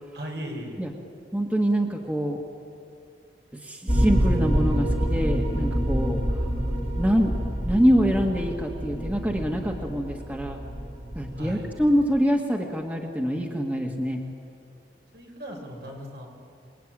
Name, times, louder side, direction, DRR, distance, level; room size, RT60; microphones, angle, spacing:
voice 1, 0.1-0.8 11.3-11.7 15.1-16.3, equal, 70° right, 1 dB, 5.7 m, -37 dB
voice 2, 1.3-2.4 3.6-6.2 7.0-7.4 7.6-10.6 11.1-14.2, equal, 10° right, 1 dB, 1.7 m, -25 dB
sound 1, 3.9-12.2, equal, 40° right, 2.9 m, -27 dB
28.0 x 20.5 x 9.1 m, 2.4 s
head